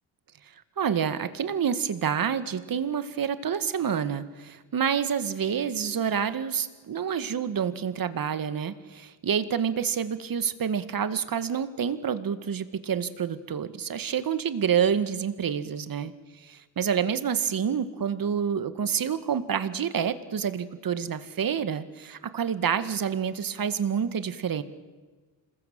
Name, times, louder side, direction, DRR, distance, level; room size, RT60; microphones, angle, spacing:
voice 1, 0.8-16.1 16.4-24.6, right 7 dB, 50° right, 11 dB, 2.0 m, -28 dB
27.5 x 20.5 x 7.7 m, 1.4 s
cardioid pair, 75°, 46 cm